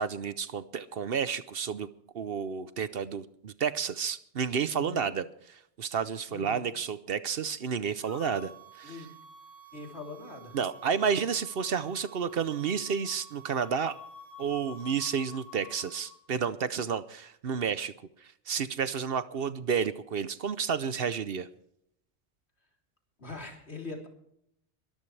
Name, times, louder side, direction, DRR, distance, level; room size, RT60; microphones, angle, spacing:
voice 1, 0.0-1.9 2.1-8.9 10.5-13.9 14.4-17.9 18.2-21.5, right 6 dB, 60° right, 14 dB, 0.9 m, -31 dB
voice 2, 4.7-5.1 6.3-6.6 8.8-9.1 9.7-10.6 23.2-24.1, left 3 dB, 70° left, 1 dB, 3.9 m, -42 dB
sound 1, 8.0-16.2, left 1 dB, 15° right, 3.4 m, -50 dB
23.0 x 13.0 x 3.3 m, 0.72 s
omnidirectional pair, 1.1 m